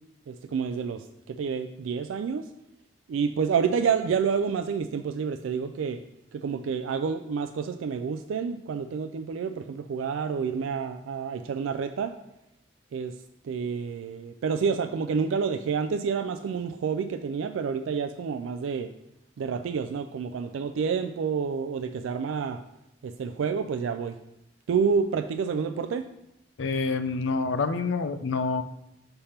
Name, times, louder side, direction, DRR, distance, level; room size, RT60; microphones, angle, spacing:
voice 1, 0.3-2.5 3.1-6.0 6.3-12.2 12.9-13.2 13.4-18.9 19.4-22.6 23.0-24.2 24.7-26.1, right 6 dB, 80° right, 8 dB, 0.3 m, -29 dB
voice 2, 26.6-28.6, left 4 dB, 70° left, 11 dB, 0.4 m, -27 dB
5.7 x 3.4 x 5.6 m, 0.83 s
head